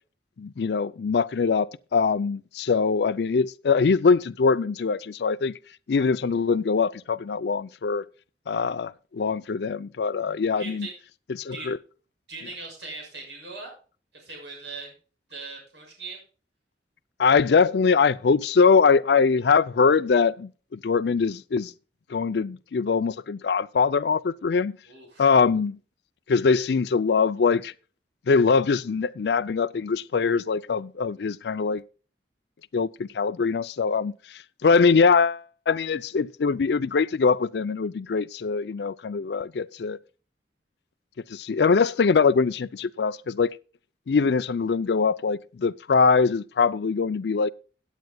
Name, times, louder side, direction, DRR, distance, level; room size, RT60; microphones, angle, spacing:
voice 1, 0.4-5.5 5.9-8.0 8.5-10.9 11.4-11.8 17.2-20.5 20.8-21.7 22.1-24.7 25.2-25.8 26.3-27.7 28.3-31.8 32.7-34.1 34.6-40.0 41.3-43.5 44.1-47.5, left 5 dB, 65° left, 0.4 m, -22 dB
voice 2, 10.6-10.9 11.5-11.7 12.3-13.7 14.1-14.9 15.3-16.2 24.9-25.3, right 3 dB, 85° right, 6.5 m, -39 dB
17.0 x 9.1 x 2.3 m
head